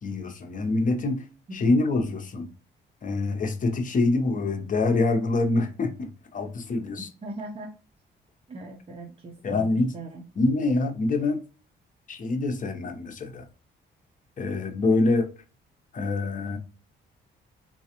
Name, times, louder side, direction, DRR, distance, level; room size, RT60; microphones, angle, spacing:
voice 1, 0.0-1.2 1.5-2.5 3.0-7.1 9.4-9.9 10.4-11.4 12.1-13.4 14.4-15.3 15.9-16.6, left 3 dB, 40° left, 0.8 m, -25 dB
voice 2, 7.2-7.7 8.5-10.2, right 1 dB, 30° right, 0.6 m, -39 dB
4.1 x 2.3 x 2.8 m
cardioid pair, 90°, 20 cm